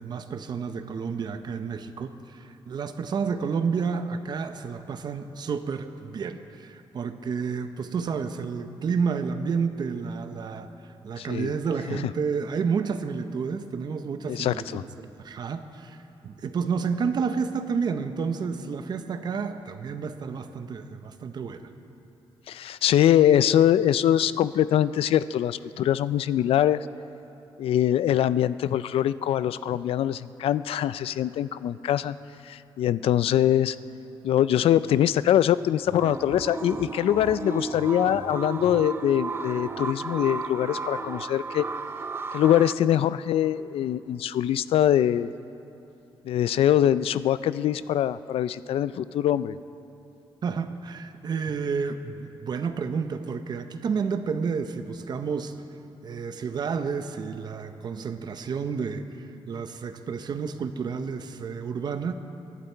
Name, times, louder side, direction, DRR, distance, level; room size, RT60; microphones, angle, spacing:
voice 1, 0.0-10.7 11.0-14.7 15.0-16.0 16.2-21.7 50.4-55.5 56.0-62.1, right 5 dB, 50° right, 9 dB, 0.8 m, -30 dB
voice 2, 11.2-11.5 11.9-12.0 14.3-14.8 22.5-26.9 27.6-32.2 32.5-33.8 34.2-41.7 42.3-45.3 46.3-49.6, left 11 dB, 90° left, 16 dB, 0.4 m, -23 dB
sound 1, 35.9-42.7, right 4 dB, 25° right, 0.4 m, -34 dB
23.0 x 11.5 x 4.5 m, 2.8 s
wide cardioid pair, 155°, 9 cm